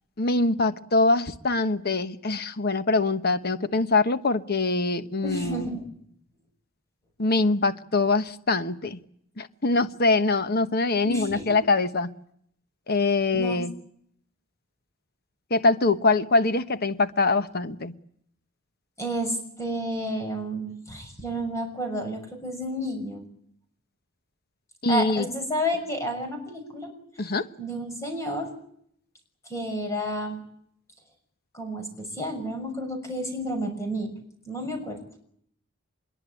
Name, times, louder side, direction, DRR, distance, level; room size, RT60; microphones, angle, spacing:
voice 1, 0.2-5.7 7.2-9.0 9.4-12.1 12.9-13.7 15.5-17.9 24.8-25.3 27.2-27.5, left 3 dB, 50° left, 1.2 m, -23 dB
voice 2, 5.2-5.9 11.0-11.5 13.4-13.6 19.0-23.2 24.9-26.9 27.6-28.5 29.4-30.4 31.5-34.1 34.4-35.0, equal, 15° left, 6.3 m, -31 dB
25.0 x 22.5 x 8.5 m
head